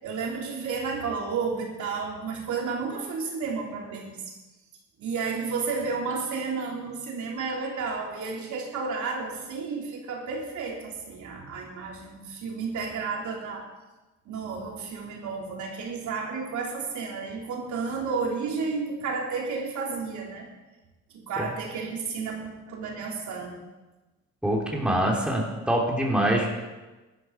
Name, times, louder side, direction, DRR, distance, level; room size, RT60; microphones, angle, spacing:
voice 1, 0.0-4.2 5.0-13.6 14.3-20.5 21.1-22.4 22.7-23.6, right 4 dB, 75° right, -2 dB, 3.5 m, -32 dB
voice 2, 24.4-26.6, right 1 dB, 5° right, -2 dB, 3.6 m, -24 dB
15.5 x 12.0 x 4.8 m, 1.1 s
cardioid pair, 90°, 30 cm